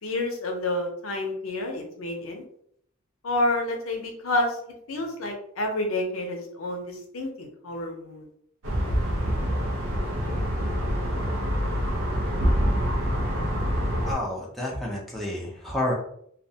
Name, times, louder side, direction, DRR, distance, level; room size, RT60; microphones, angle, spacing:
voice 1, 0.0-2.4 3.2-4.6 4.9-8.3, left 1 dB, 85° left, 2 dB, 0.7 m, -29 dB
sound 1, 8.6-14.1, equal, 90° right, 0.6 m, -26 dB
voice 2, 14.0-15.9, left 1 dB, ahead, -4 dB, 0.6 m, -30 dB
2.4 x 2.2 x 2.7 m, 0.68 s
head